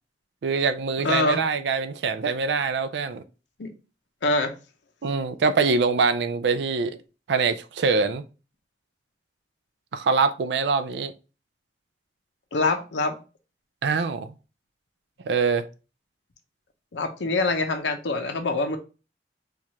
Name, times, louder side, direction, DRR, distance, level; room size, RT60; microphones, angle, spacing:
voice 1, 0.4-3.2 5.0-7.0 7.3-8.2 9.9-11.1 13.8-14.3 15.2-15.6, right 4 dB, 75° right, 0.4 m, -24 dB
voice 2, 1.0-1.4 3.6-3.7 4.2-4.5 12.5-13.2 16.9-18.8, left 2 dB, 90° left, 0.6 m, -24 dB
4.5 x 2.4 x 2.8 m
head